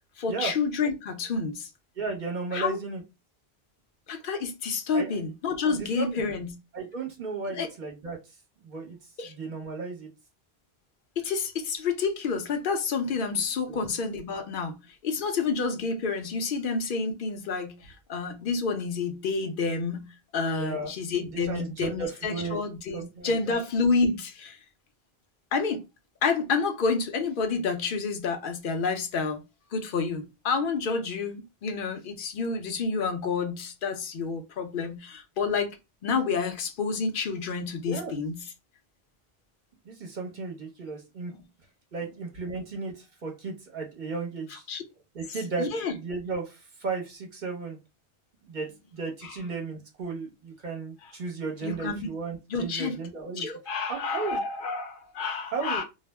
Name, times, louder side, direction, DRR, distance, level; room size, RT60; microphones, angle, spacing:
voice 1, 0.2-1.7 2.5-2.8 4.1-6.6 7.5-7.7 9.2-9.3 11.2-14.8 15.0-24.6 25.5-25.8 26.2-29.4 29.7-35.8 36.0-38.4 44.7-44.8 45.6-45.9 49.2-49.3 51.6-52.1 52.5-53.0 53.4-55.8, left 4 dB, 60° left, 0.7 m, -29 dB
voice 2, 1.9-3.0 4.9-5.1 5.8-6.2 6.7-8.4 8.6-9.0 9.3-10.1 13.7-13.8 20.6-20.9 21.3-23.6 37.8-38.1 39.8-41.3 41.9-44.7 45.1-47.8 48.4-53.5 53.9-54.4 55.5-55.8, right 4 dB, 50° right, 0.9 m, -35 dB
2.3 x 2.0 x 3.2 m
omnidirectional pair, 1.1 m